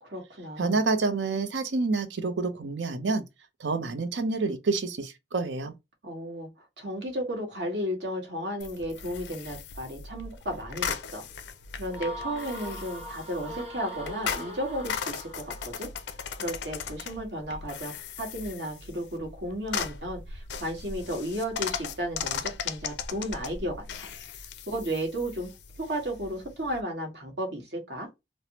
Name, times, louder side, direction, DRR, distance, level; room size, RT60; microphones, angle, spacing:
voice 1, 0.0-0.8 6.0-6.5 6.8-11.2 11.8-15.9 16.4-24.0 24.7-25.5 25.8-28.1, equal, 70° right, 1.3 m, -34 dB
voice 2, 0.6-3.2 3.6-5.7, right 3 dB, 85° right, 0.6 m, -28 dB
sound 1, 8.6-26.8, left 6 dB, 75° left, 0.4 m, -38 dB
sound 2, 11.9-15.7, equal, 35° right, 0.9 m, -40 dB
3.3 x 2.0 x 2.7 m
head